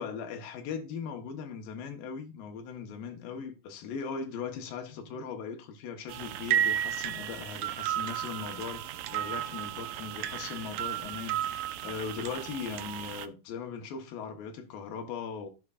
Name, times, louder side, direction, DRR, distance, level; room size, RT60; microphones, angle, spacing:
voice 1, 0.0-15.5, left 6 dB, 80° left, 3.0 m, -39 dB
sound 1, 6.1-13.3, right 11 dB, 80° right, 2.4 m, -33 dB
14.5 x 4.9 x 2.5 m
omnidirectional pair, 4.2 m